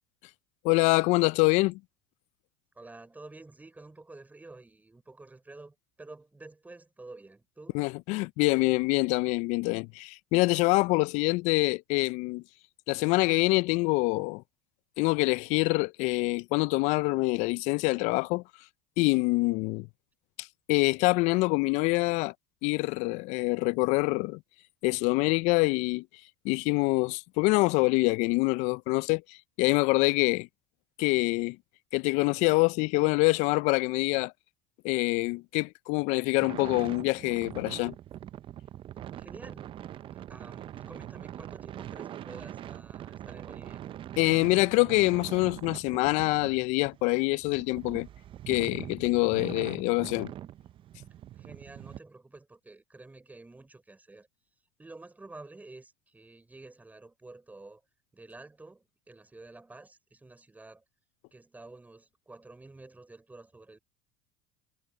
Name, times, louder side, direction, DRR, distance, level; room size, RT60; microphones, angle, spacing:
voice 1, 0.6-1.8 7.7-12.4 12.9-14.4 15.0-18.4 19.0-19.9 20.4-22.3 22.6-24.4 24.8-26.0 26.4-30.5 31.0-31.6 31.9-34.3 34.8-37.9 44.2-48.1 48.5-50.3, left 25 dB, 65° left, 0.4 m, -25 dB
voice 2, 2.8-7.8 39.1-39.8 40.1-43.8 51.4-54.3 54.8-57.8 58.1-60.8 61.3-63.8, right 2 dB, 10° right, 5.1 m, -50 dB
sound 1, 36.4-52.0, right 11 dB, 40° right, 0.7 m, -43 dB
supercardioid pair, 95°, 13 cm